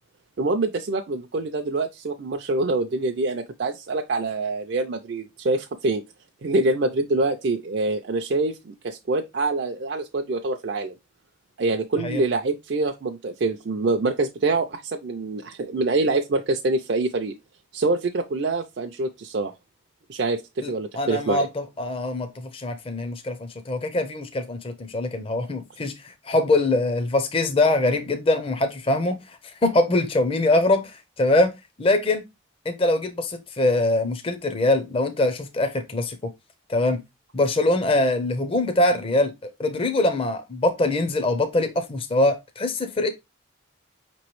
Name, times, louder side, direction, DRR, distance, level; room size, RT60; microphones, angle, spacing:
voice 1, 0.4-6.0 6.4-10.9 11.6-17.3 17.7-19.5 20.1-21.5, right 2 dB, 55° right, 0.4 m, -25 dB
voice 2, 20.6-29.4 29.6-31.5 31.8-32.3 32.7-36.2 36.7-37.0 37.3-43.1, left 2 dB, 30° left, 0.5 m, -23 dB
5.4 x 3.0 x 3.0 m
head